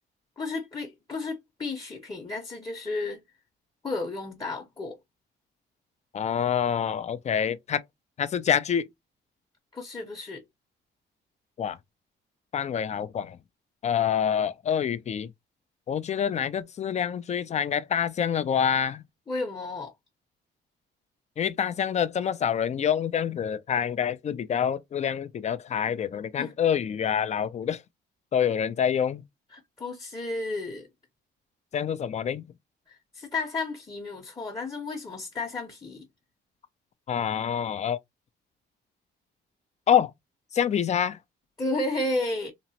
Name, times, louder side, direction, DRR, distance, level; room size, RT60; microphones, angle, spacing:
voice 1, 0.4-3.2 3.8-5.0 9.7-10.4 19.3-19.9 26.4-26.5 29.5-30.9 32.9-36.0 41.6-42.5, left 2 dB, 20° left, 0.7 m, -32 dB
voice 2, 6.1-7.8 8.2-8.9 11.6-11.8 12.5-13.4 13.8-15.3 15.9-19.0 21.4-27.8 28.3-29.2 31.7-32.4 37.1-38.0 39.9-40.1 40.5-41.2, left 8 dB, 35° left, 0.4 m, -26 dB
2.9 x 2.1 x 2.7 m
cardioid pair, 90°, 20 cm